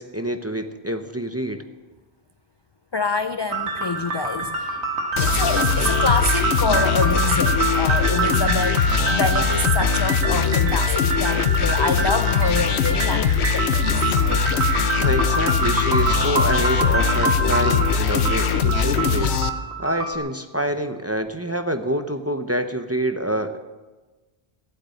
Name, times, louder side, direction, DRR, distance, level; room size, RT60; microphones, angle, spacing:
voice 1, 0.0-1.7 15.0-19.4 19.8-23.6, right 1 dB, 15° right, 7 dB, 0.6 m, -26 dB
voice 2, 2.9-4.8 5.2-14.4, left 3 dB, 45° left, 9 dB, 0.3 m, -26 dB
sound 1, 3.5-20.2, right 3 dB, 90° right, 1.8 m, -26 dB
sound 2, 5.2-19.5, left 6 dB, 80° left, 1.0 m, -21 dB
14.5 x 8.1 x 8.9 m, 1.3 s
omnidirectional pair, 1.1 m